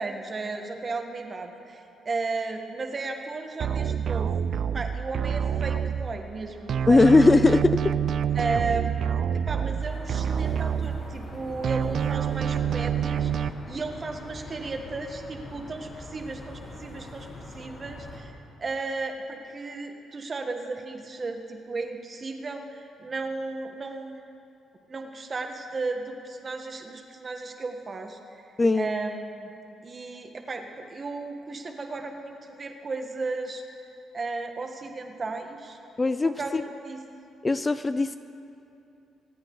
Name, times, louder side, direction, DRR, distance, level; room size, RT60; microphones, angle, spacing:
voice 1, 0.0-4.3 4.7-7.1 7.4-7.5 8.3-9.2 9.5-17.3 17.5-24.2 24.9-28.2 28.7-29.5 29.8-33.6 34.1-35.8 36.2-37.0, right 3 dB, 35° right, 4 dB, 1.4 m, -34 dB
sound 1, 3.6-6.4 6.7-11.3 11.6-13.5, right 8 dB, 60° right, 0.4 m, -27 dB
voice 2, 6.9-7.9 28.6-28.9 36.0-36.6 37.4-38.2, left 3 dB, 25° left, 11 dB, 0.4 m, -20 dB
sound 2, 9.8-18.2, left 1 dB, 55° left, 2.7 m, -43 dB
25.5 x 8.9 x 3.9 m, 2.7 s
cardioid pair, 90°, 0 cm